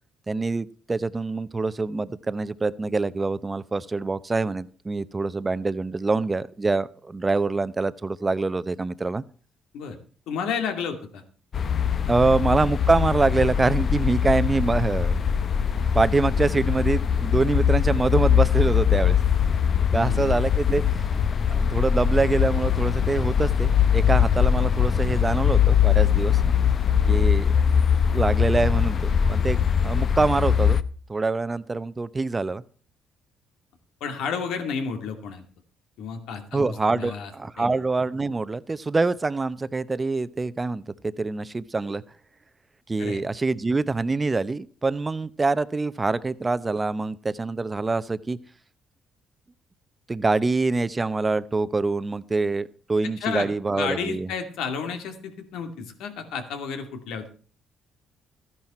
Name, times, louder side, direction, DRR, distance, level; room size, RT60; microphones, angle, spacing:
voice 1, 0.3-9.2 12.1-15.2 15.9-19.2 19.9-20.8 21.5-26.4 27.1-27.6 28.1-30.8 31.1-32.6 36.5-42.0 42.9-48.4 50.1-54.3, right 3 dB, 20° right, 15 dB, 0.8 m, -25 dB
voice 2, 10.3-11.2 19.9-20.4 34.0-35.4 36.0-37.3 37.6-37.8 43.0-43.2 53.0-57.3, left 6 dB, 85° left, 6 dB, 2.5 m, -32 dB
sound 1, 11.5-30.8, left 8 dB, 50° left, 0.8 m, -22 dB
14.0 x 10.5 x 4.3 m, 0.41 s
cardioid pair, 95°, 0 cm